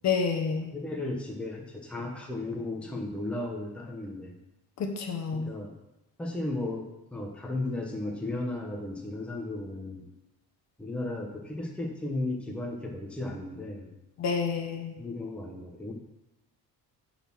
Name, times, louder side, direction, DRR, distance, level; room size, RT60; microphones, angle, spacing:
voice 1, 0.0-0.7 4.8-5.5 14.2-15.0, left 5 dB, 45° left, 4 dB, 1.0 m, -29 dB
voice 2, 0.7-4.3 5.3-5.8 6.2-10.1 10.8-13.9 15.0-15.9, left 2 dB, 5° left, 0 dB, 0.9 m, -35 dB
8.9 x 4.3 x 6.0 m, 0.96 s
cardioid pair, 165°, 38 cm